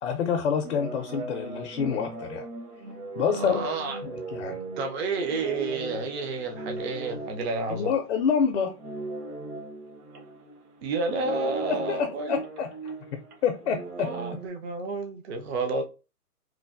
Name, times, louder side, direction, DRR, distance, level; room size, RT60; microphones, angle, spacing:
voice 1, 0.0-2.5 3.2-3.6 4.0-4.6 7.7-8.7 11.7-12.7 13.1-14.1, left 6 dB, 50° left, 0.5 m, -27 dB
sound 1, 0.6-8.4 8.7-14.5, right 3 dB, 70° right, 1.0 m, -38 dB
voice 2, 3.3-4.0 4.8-7.9 10.8-12.4 14.0-15.8, right 3 dB, 45° right, 0.5 m, -30 dB
3.1 x 2.1 x 2.3 m
figure-of-eight pair, 125°, 47 cm